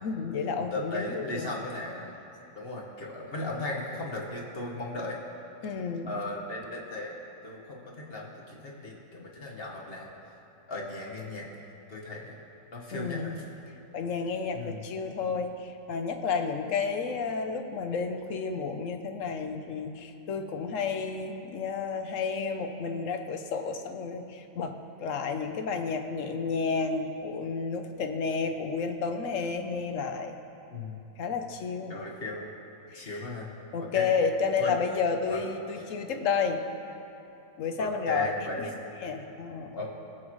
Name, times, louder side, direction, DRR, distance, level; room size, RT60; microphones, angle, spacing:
voice 1, 0.0-1.5 5.6-6.1 12.9-13.4 13.9-24.7 25.0-30.3 31.2-32.0 32.9-33.3 33.7-36.6 37.6-38.7 39.0-39.8, left 5 dB, 60° left, 6 dB, 1.0 m, -31 dB
voice 2, 0.6-2.2 2.6-5.2 6.1-7.2 7.4-10.1 10.7-11.5 11.9-12.4 12.7-13.4 14.5-14.8 30.7-31.0 31.9-32.5 32.9-33.5 33.8-34.1 34.6-34.7 35.3-35.4 37.8-38.7 39.8-39.9, left 2 dB, 40° left, -2 dB, 1.4 m, -36 dB
20.0 x 7.6 x 3.1 m, 2.8 s
omnidirectional pair, 1.7 m